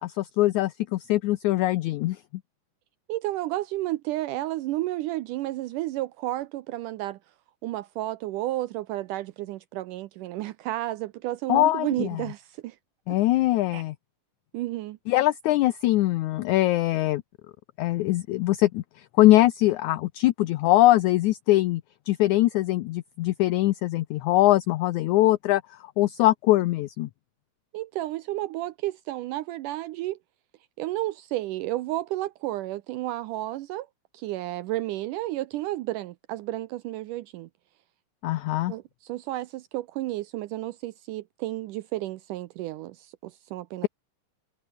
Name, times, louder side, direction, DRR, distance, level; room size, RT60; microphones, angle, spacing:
voice 1, 0.0-2.2 11.5-12.2 13.1-14.0 15.1-17.2 17.8-21.8 22.1-25.6 26.0-27.1 38.2-38.7, left 16 dB, 75° left, 1.9 m, -22 dB
voice 2, 3.1-7.2 7.6-12.8 13.1-13.2 13.7-13.8 14.5-15.0 27.7-30.2 30.8-33.9 34.1-37.5 38.7-43.9, right 16 dB, 80° right, 2.2 m, -32 dB
omnidirectional pair, 3.9 m